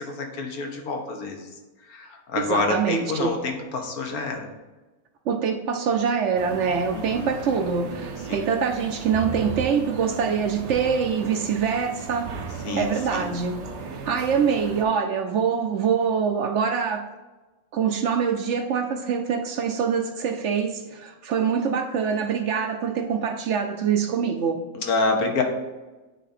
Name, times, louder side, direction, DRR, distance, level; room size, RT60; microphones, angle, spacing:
voice 1, 0.0-1.5 1.9-4.5 6.9-7.3 8.3-8.4 12.6-13.4 14.0-14.2 24.7-25.4, left 3 dB, 80° left, 3 dB, 1.5 m, -28 dB
voice 2, 2.4-3.3 5.3-12.4 12.8-13.6 14.1-17.1 17.7-24.6, right 6 dB, 65° right, 5 dB, 0.8 m, -24 dB
sound 1, 6.3-14.8, right 5 dB, 90° right, 1.3 m, -35 dB
9.2 x 3.6 x 4.2 m, 1.1 s
omnidirectional pair, 1.5 m